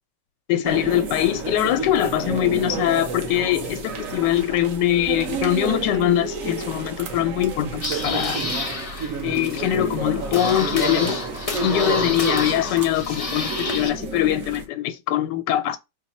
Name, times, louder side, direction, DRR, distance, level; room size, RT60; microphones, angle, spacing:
voice 1, 0.5-8.4 9.2-11.2 11.6-15.8, left 12 dB, 85° left, 1.2 m, -22 dB
sound 1, 0.6-14.7, right 5 dB, 60° right, 1.1 m, -30 dB
sound 2, 7.4-13.9, left 3 dB, 55° left, 0.4 m, -30 dB
4.2 x 2.4 x 4.1 m
omnidirectional pair, 1.8 m